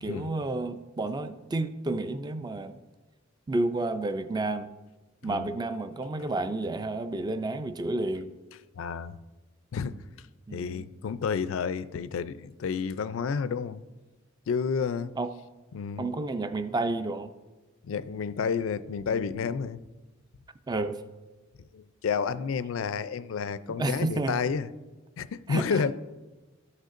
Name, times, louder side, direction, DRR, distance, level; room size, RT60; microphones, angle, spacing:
voice 1, 0.0-2.8 3.5-4.7 5.2-8.3 10.5-10.9 15.2-15.3 16.0-17.3 20.7-21.0 23.8-24.4 25.5-25.8, right 2 dB, 20° right, 0.3 m, -30 dB
voice 2, 8.8-9.2 9.7-10.0 10.5-13.8 14.5-15.1 15.7-16.1 17.8-19.8 21.7-24.7 25.2-25.9, left 6 dB, 80° left, 0.4 m, -30 dB
13.5 x 6.5 x 2.5 m
head